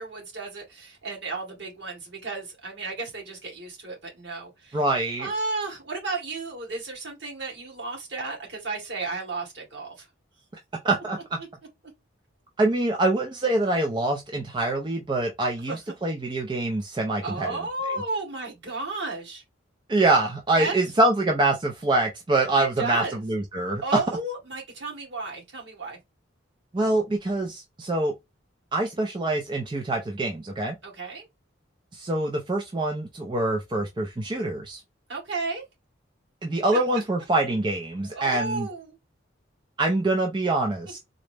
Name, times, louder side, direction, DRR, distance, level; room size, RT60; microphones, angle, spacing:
voice 1, 0.0-4.8 5.2-10.1 15.7-15.8 17.2-19.4 20.6-20.7 22.6-23.2 23.8-26.0 30.8-31.2 35.1-35.6 38.1-39.0, right 3 dB, 60° right, 1.9 m, -33 dB
voice 2, 4.7-5.3 10.8-11.4 12.6-17.6 19.9-24.0 26.7-28.1 28.7-30.8 31.9-34.8 36.4-38.7 39.8-41.0, right 2 dB, 25° right, 0.4 m, -25 dB
3.8 x 2.0 x 3.3 m
head